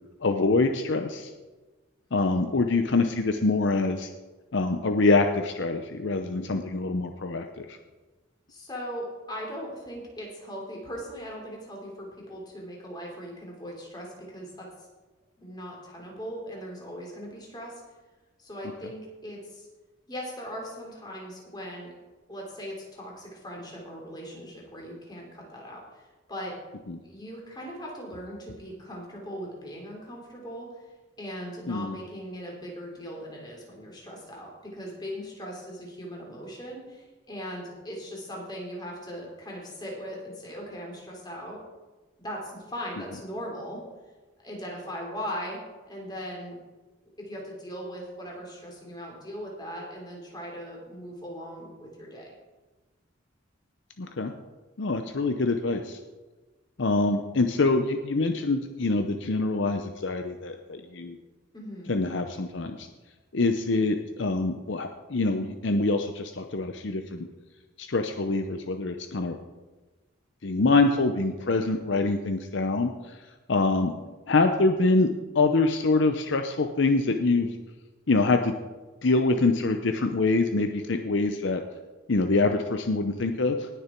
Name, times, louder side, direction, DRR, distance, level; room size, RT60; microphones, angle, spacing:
voice 1, 0.2-1.3 2.1-4.1 4.5-7.7 26.9-27.0 31.7-31.9 54.0-54.3 54.8-56.0 56.8-61.2 61.9-62.9 63.3-67.3 67.8-69.4 70.4-72.9 73.5-73.9 74.3-75.1 75.3-77.5 78.1-78.5 79.0-81.6 82.1-83.7, left 3 dB, 60° left, 6 dB, 0.7 m, -25 dB
voice 2, 8.5-14.9 15.4-17.8 18.4-19.7 20.1-21.9 22.3-26.5 27.0-30.8 31.2-41.6 42.2-43.8 44.4-45.6 45.9-46.5 47.3-52.3 61.5-61.9, equal, 20° left, -2 dB, 3.2 m, -39 dB
19.0 x 6.8 x 4.5 m, 1.2 s
head